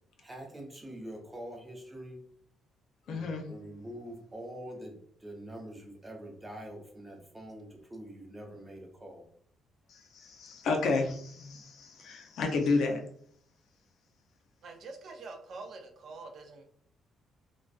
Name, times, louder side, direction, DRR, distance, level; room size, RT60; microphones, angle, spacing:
voice 1, 0.2-2.2 3.1-9.3, right 1 dB, 15° right, 0.7 m, -45 dB
voice 2, 3.1-3.4 9.9-13.0, left 3 dB, 75° left, 0.5 m, -31 dB
voice 3, 14.6-16.6, right 3 dB, 65° right, 0.5 m, -45 dB
2.4 x 2.2 x 2.3 m
cardioid pair, 90°, 0 cm